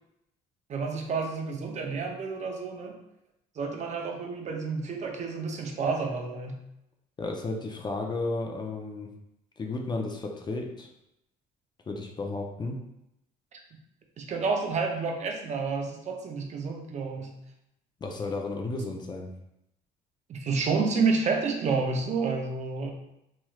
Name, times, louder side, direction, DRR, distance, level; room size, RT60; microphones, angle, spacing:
voice 1, 0.7-3.0 3.6-6.6 13.5-13.6 14.2-17.4 20.3-22.9, right 4 dB, 45° right, 2 dB, 0.5 m, -29 dB
voice 2, 7.2-9.1 9.6-10.9 11.9-12.8 18.0-19.3, left 2 dB, 25° left, 2 dB, 0.4 m, -33 dB
3.1 x 3.0 x 2.3 m, 0.84 s
cardioid pair, 110°, 17 cm